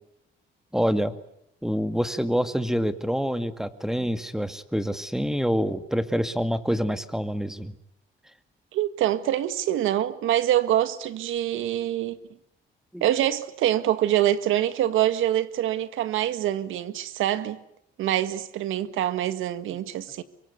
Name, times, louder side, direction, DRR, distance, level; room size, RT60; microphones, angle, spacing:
voice 1, 0.7-1.1 1.6-7.7 12.9-13.0, equal, ahead, 2.2 m, -26 dB
voice 2, 8.7-12.2 13.0-17.6 18.0-20.2, right 12 dB, 90° right, 1.7 m, -25 dB
25.5 x 23.5 x 9.7 m
cardioid pair, 90°, 20 cm